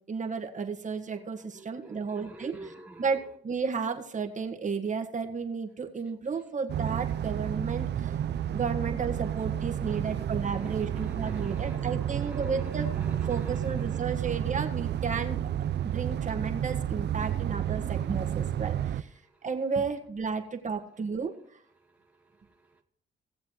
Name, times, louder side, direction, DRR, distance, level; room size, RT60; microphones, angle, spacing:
voice 1, 0.1-2.6 3.0-8.1 8.5-13.0 13.3-15.5 15.8-19.1 19.4-21.3, right 5 dB, 40° right, 4 dB, 1.6 m, -33 dB
voice 2, 1.5-3.2 9.2-14.4 19.1-19.5 21.8-22.8, right 2 dB, 5° right, 0 dB, 1.2 m, -48 dB
sound 1, 6.7-19.0, right 10 dB, 60° right, 0.6 m, -31 dB
18.5 x 7.4 x 3.1 m, 0.66 s
cardioid pair, 90°, 20 cm